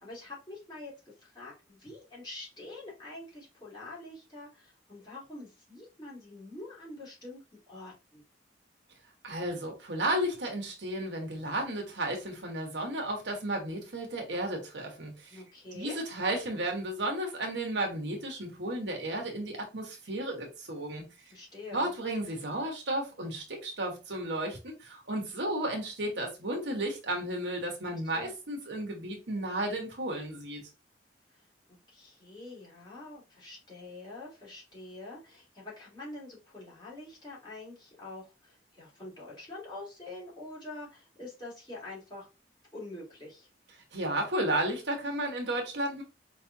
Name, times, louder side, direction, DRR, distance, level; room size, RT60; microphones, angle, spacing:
voice 1, 0.0-7.4 7.7-8.2 15.3-16.0 21.3-21.9 27.8-28.3 31.3-31.5 31.9-42.3 42.7-43.5, left 2 dB, 25° left, 2.6 m, -45 dB
voice 2, 9.2-15.4 15.7-21.1 21.7-30.6 43.9-46.0, right 1 dB, 70° right, 1.3 m, -33 dB
4.9 x 3.3 x 2.8 m
head